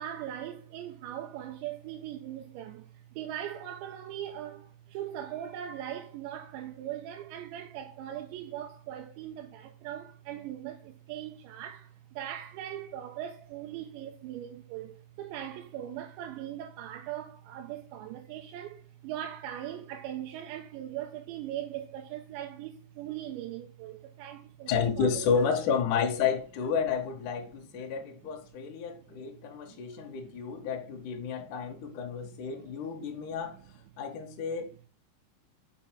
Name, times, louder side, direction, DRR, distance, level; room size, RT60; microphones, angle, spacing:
voice 1, 0.0-2.9 3.2-25.2 29.7-30.0 32.2-32.3, right 11 dB, 85° right, 3.0 m, -40 dB
voice 2, 24.7-33.6 34.0-34.7, left 6 dB, 65° left, 2.2 m, -31 dB
6.0 x 5.8 x 6.0 m
omnidirectional pair, 5.3 m